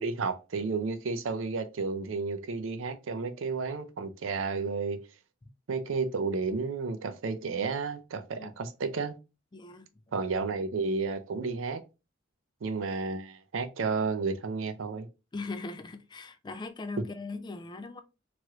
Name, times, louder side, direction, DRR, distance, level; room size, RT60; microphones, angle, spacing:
voice 1, 0.0-5.0 5.7-9.2 10.1-11.8 12.6-15.1, right 4 dB, 80° right, 0.5 m, -32 dB
voice 2, 9.5-9.9 15.3-18.0, left 3 dB, 25° left, 0.4 m, -39 dB
3.1 x 2.9 x 2.4 m
head